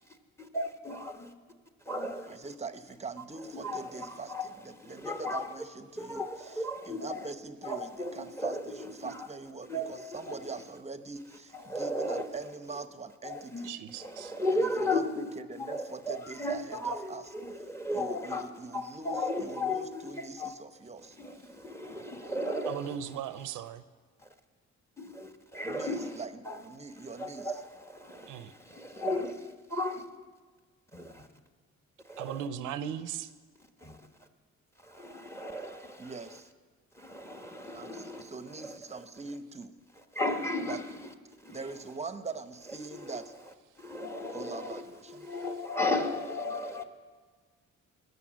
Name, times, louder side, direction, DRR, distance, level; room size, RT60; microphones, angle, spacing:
voice 1, 0.4-1.3 1.9-2.4 3.5-4.4 4.8-5.5 6.0-7.2 7.6-8.8 9.0-9.2 9.7-10.4 11.7-12.3 13.2-13.7 14.0-15.3 15.5-18.4 18.7-19.9 20.4-20.5 21.2-22.9 25.0-26.2 26.4-26.6 27.2-30.0 30.9-31.3 32.1-32.4 33.8-34.0 34.8-36.1 36.9-38.3 38.6-38.8 40.1-40.9 41.4-41.6 43.8-44.8 45.1-46.8, left 1 dB, 10° left, 1.3 m, -35 dB
voice 2, 2.3-13.7 14.5-17.3 17.9-21.2 25.6-27.6 36.0-36.5 37.7-39.8 40.6-40.8 41.5-43.3 44.3-45.3, right 4 dB, 20° right, 0.9 m, -43 dB
voice 3, 13.6-14.3 22.6-23.8 28.3-28.5 32.2-33.3 45.3-45.4, right 9 dB, 90° right, 0.7 m, -38 dB
20.0 x 6.8 x 6.3 m
cardioid pair, 90°, 30 cm